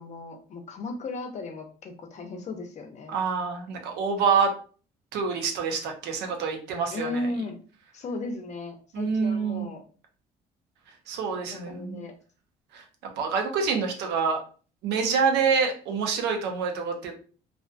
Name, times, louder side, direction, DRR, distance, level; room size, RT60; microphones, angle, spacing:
voice 1, 0.0-3.2 6.9-7.6 7.9-9.8 11.3-12.1, left 2 dB, 45° left, 5 dB, 0.6 m, -36 dB
voice 2, 3.1-4.5 5.1-7.2 8.9-9.7 11.1-12.0 12.7-12.8 13.2-14.4 14.8-17.1, right 5 dB, 85° right, 4 dB, 0.6 m, -26 dB
2.5 x 2.2 x 2.4 m, 0.39 s
cardioid pair, 110°, 17 cm